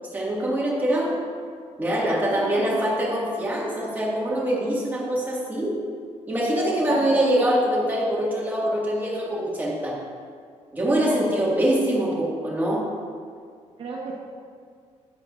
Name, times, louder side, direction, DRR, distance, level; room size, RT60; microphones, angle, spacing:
voice 1, 0.1-1.2 1.8-5.8 6.3-10.0 10.7-12.8, right 1 dB, 15° right, -5 dB, 1.9 m, -24 dB
voice 2, 1.9-2.9 6.5-7.2 10.9-11.3 13.8-14.1, right 4 dB, 50° right, -2 dB, 0.9 m, -33 dB
11.0 x 8.0 x 2.5 m, 2.1 s
cardioid pair, 150°, 12 cm